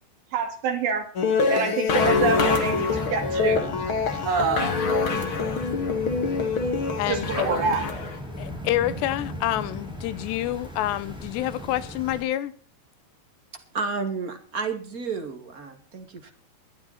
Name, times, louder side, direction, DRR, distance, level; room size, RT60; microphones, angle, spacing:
voice 1, 0.3-1.1 1.5-3.7 4.3-4.8 7.1-7.8, right 5 dB, 75° right, 6 dB, 4.7 m, -26 dB
sound 1, 1.2-8.2, left 4 dB, 40° left, 2.3 m, -25 dB
sound 2, 2.0-12.2, left 1 dB, ahead, 4.9 m, -36 dB
voice 2, 7.0-7.3 8.4-12.5, left 13 dB, 80° left, 16 dB, 3.0 m, -27 dB
voice 3, 13.5-16.3, right 4 dB, 30° right, 5 dB, 1.6 m, -32 dB
23.0 x 9.6 x 4.3 m, 0.41 s
omnidirectional pair, 5.0 m